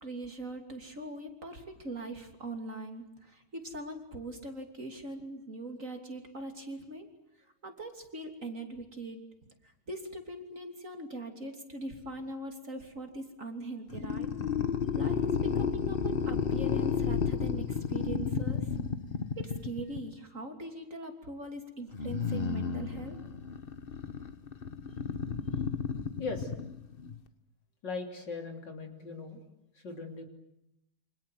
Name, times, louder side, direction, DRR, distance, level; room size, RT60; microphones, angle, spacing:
voice 1, 0.0-7.1 7.6-9.2 9.6-14.3 14.9-18.7 19.4-23.2, right 2 dB, 35° right, 4 dB, 3.3 m, -41 dB
sound 1, 13.9-20.1 21.9-27.2, left 6 dB, 35° left, 1.0 m, -32 dB
voice 2, 26.2-26.5 27.8-29.4 29.8-30.2, left 4 dB, 55° left, 5 dB, 3.8 m, -39 dB
28.0 x 26.0 x 7.9 m, 0.83 s
omnidirectional pair, 2.3 m